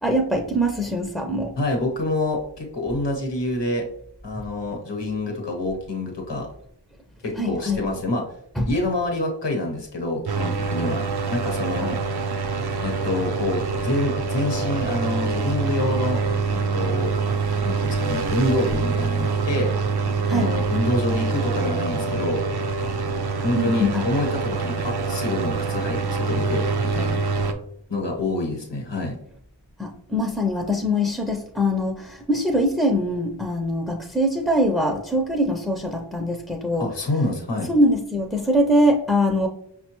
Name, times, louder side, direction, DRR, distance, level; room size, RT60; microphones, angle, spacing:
voice 1, 0.0-1.5 7.4-7.8 8.6-8.7 20.3-20.5 23.5-24.1 29.8-36.8 37.7-39.5, equal, ahead, 2 dB, 0.4 m, -22 dB
voice 2, 1.6-3.8 4.2-6.5 7.2-8.2 8.7-11.0 11.3-12.0 12.8-16.2 16.5-17.1 17.6-19.7 20.3-22.4 23.4-27.2 27.9-29.1 36.8-37.7, left 1 dB, 75° left, 0 dB, 1.0 m, -27 dB
sound 1, 10.3-27.5, right 4 dB, 65° right, 0.5 m, -25 dB
5.7 x 2.2 x 2.9 m, 0.71 s
wide cardioid pair, 65°, 42 cm